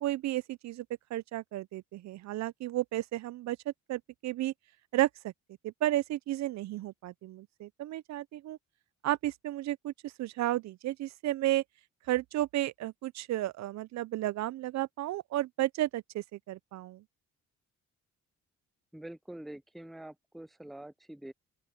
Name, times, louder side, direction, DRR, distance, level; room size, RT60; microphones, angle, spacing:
voice 1, 0.0-0.9 1.1-4.5 4.9-5.3 5.6-8.6 9.0-11.6 12.1-17.0, right 15 dB, 65° right, 0.5 m, -33 dB
voice 2, 18.9-21.3, right 1 dB, ahead, 0.4 m, -45 dB
open air
cardioid pair, 90°, 30 cm